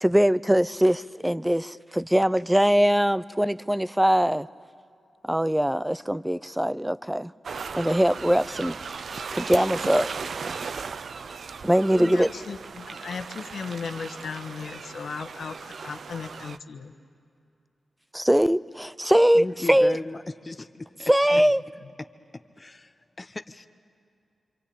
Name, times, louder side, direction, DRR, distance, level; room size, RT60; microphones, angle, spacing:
voice 1, 0.0-4.5 5.2-7.3 7.8-8.8 9.3-10.1 11.6-12.3 18.1-20.0 21.1-21.6, equal, 10° right, 17 dB, 0.6 m, -22 dB
sound 1, 7.4-16.6, right 5 dB, 75° right, 0.6 m, -37 dB
voice 2, 11.9-16.9 21.3-21.4, left 5 dB, 80° left, 5 dB, 1.3 m, -36 dB
voice 3, 19.3-20.7 21.0-21.1 22.6-23.7, left 2 dB, 35° left, 9 dB, 1.0 m, -36 dB
26.0 x 25.0 x 8.7 m, 2.5 s
cardioid pair, 45°, 0 cm